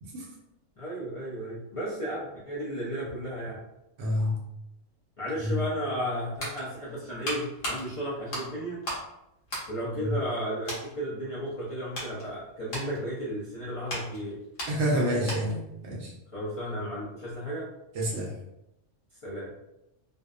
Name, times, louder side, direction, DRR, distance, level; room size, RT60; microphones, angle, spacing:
voice 1, 0.8-3.6 5.2-8.8 9.7-14.4 16.3-17.7 19.2-19.5, equal, 35° left, -9 dB, 0.5 m, -34 dB
voice 2, 4.0-4.4 5.4-5.6 10.0-10.2 14.7-16.1 17.9-18.3, equal, 70° right, -2 dB, 0.9 m, -28 dB
sound 1, 6.0-9.1 9.4-10.4 10.6-10.9 11.4-15.7 16.0-16.1, equal, 55° left, 1.0 m, -38 dB
2.6 x 2.1 x 2.3 m, 0.86 s
omnidirectional pair, 1.3 m